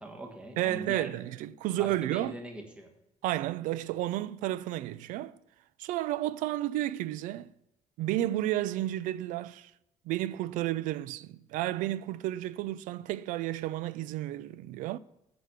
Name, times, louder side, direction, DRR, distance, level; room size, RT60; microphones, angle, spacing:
voice 1, 0.0-1.2 1.7-2.9, right 1 dB, 10° right, 1.3 m, -41 dB
voice 2, 0.6-2.3 3.2-5.4 5.8-7.5 8.0-9.7 10.1-15.0, right 14 dB, 80° right, 0.4 m, -32 dB
8.2 x 6.1 x 6.8 m
cardioid pair, 170°, 13 cm